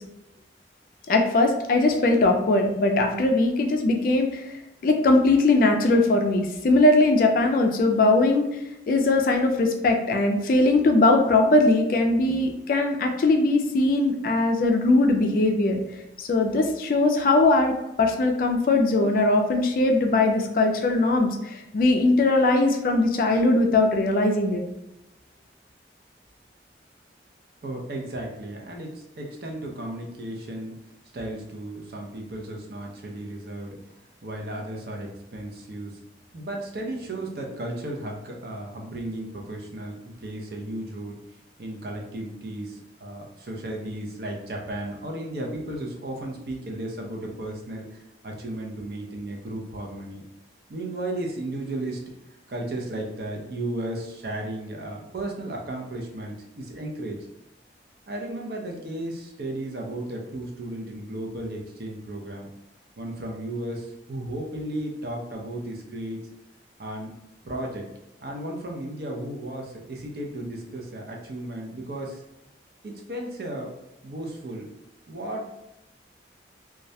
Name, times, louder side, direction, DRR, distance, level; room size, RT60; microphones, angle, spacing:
voice 1, 1.1-8.5 8.9-15.8 16.2-24.6, left 2 dB, 50° left, 3 dB, 0.3 m, -20 dB
voice 2, 27.6-30.8 31.1-33.8 34.2-36.0 36.3-41.2 41.6-50.2 50.7-52.0 52.5-57.2 58.1-62.5 63.0-66.3 66.8-67.2 67.4-67.9 68.2-72.2 72.8-73.7 74.0-74.7 75.1-75.5, right 1 dB, 55° right, 0 dB, 0.5 m, -34 dB
2.3 x 2.1 x 2.6 m, 0.90 s
head